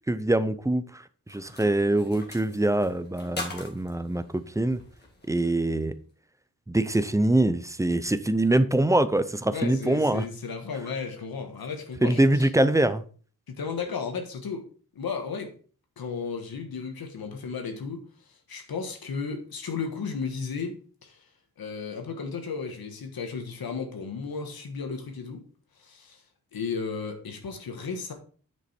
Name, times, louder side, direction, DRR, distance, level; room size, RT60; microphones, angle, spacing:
voice 1, 0.1-1.0 1.3-4.8 5.3-5.9 6.7-10.3 12.0-13.0, right 1 dB, 10° right, 0.4 m, -24 dB
sound 1, 1.3-6.0, left 2 dB, 30° left, 1.8 m, -43 dB
voice 2, 9.5-12.5 13.5-14.7 14.9-15.6 16.0-21.3 21.6-25.4 25.8-26.2 26.5-28.1, left 5 dB, 75° left, 1.4 m, -34 dB
9.6 x 5.3 x 4.3 m
wide cardioid pair, 180°, 36 cm